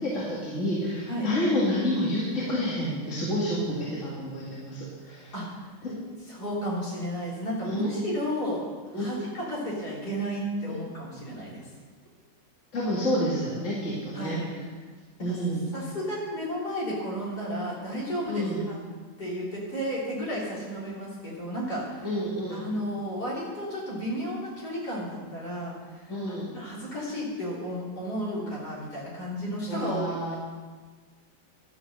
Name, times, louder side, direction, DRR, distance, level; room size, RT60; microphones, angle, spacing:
voice 1, 0.0-5.3 5.8-6.0 7.6-7.9 8.9-9.1 12.7-14.4 15.2-15.7 18.3-18.6 22.0-22.7 26.1-26.5 29.7-30.3, equal, 40° left, -7 dB, 2.5 m, -29 dB
voice 2, 6.3-8.6 9.0-11.6 14.1-14.6 15.3-15.4 15.7-18.7 19.2-22.1 22.5-26.1 26.5-30.3, equal, 60° left, -6 dB, 4.2 m, -33 dB
12.0 x 7.5 x 6.6 m, 1.5 s
omnidirectional pair, 1.9 m